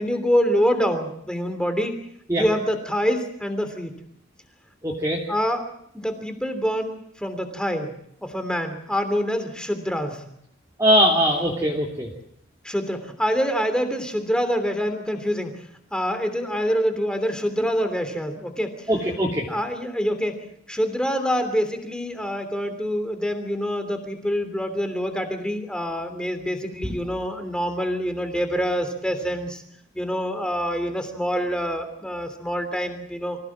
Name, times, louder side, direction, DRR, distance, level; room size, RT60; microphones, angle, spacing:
voice 1, 0.0-2.0 2.3-3.9 5.3-5.6 5.9-7.9 8.2-10.2 12.6-15.5 15.9-18.9 19.5-20.4 20.7-29.6 29.9-33.4, equal, 5° left, 7 dB, 3.1 m, -26 dB
voice 2, 4.8-5.2 10.8-12.1 18.9-19.5 26.8-26.9, equal, 15° right, -3 dB, 3.1 m, -21 dB
25.5 x 16.5 x 7.5 m, 0.73 s
head